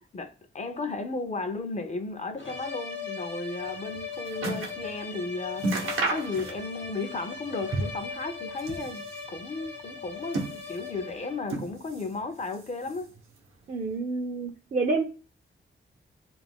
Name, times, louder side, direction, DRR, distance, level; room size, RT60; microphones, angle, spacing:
voice 1, 0.1-13.1, left 3 dB, 35° left, 0.4 m, -34 dB
sound 1, 2.4-11.6, left 5 dB, 65° left, 0.9 m, -39 dB
sound 2, 3.7-4.8 5.2-5.3 5.6-6.9 7.2-8.1 8.5-9.3 10.0-11.0 11.4-12.2 12.4-13.2 13.9-14.0, right 2 dB, 85° right, 0.7 m, -33 dB
voice 2, 13.7-15.0, right 3 dB, 35° right, 0.4 m, -28 dB
2.4 x 2.1 x 3.3 m
wide cardioid pair, 100°, 21 cm